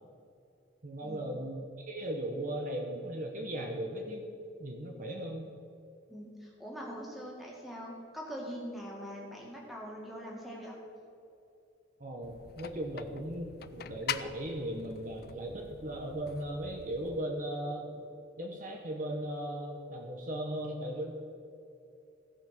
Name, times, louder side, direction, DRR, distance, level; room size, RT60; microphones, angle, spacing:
voice 1, 0.8-4.3 4.6-5.5 12.0-18.0 18.4-21.1, right 1 dB, 40° right, 1 dB, 0.9 m, -37 dB
voice 2, 6.1-10.8, equal, ahead, -3 dB, 1.9 m, -43 dB
sound 1, 12.2-17.2, left 8 dB, 50° left, 0.4 m, -43 dB
16.0 x 5.7 x 5.9 m, 2.7 s
head